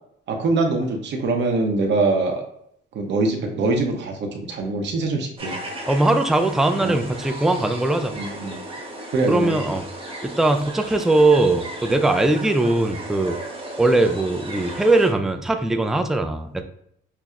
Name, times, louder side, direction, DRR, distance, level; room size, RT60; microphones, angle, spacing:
voice 1, 0.3-2.4 2.9-5.6 6.8-7.0 8.1-8.6 9.1-9.5, right 3 dB, 65° right, 2 dB, 0.8 m, -23 dB
sound 1, 5.4-15.1, right 1 dB, 25° right, 1.0 m, -35 dB
voice 2, 5.9-8.1 9.3-9.8 10.2-13.4 13.8-16.6, right 2 dB, ahead, 6 dB, 0.3 m, -20 dB
5.7 x 2.0 x 2.4 m, 0.71 s
cardioid pair, 90°, 20 cm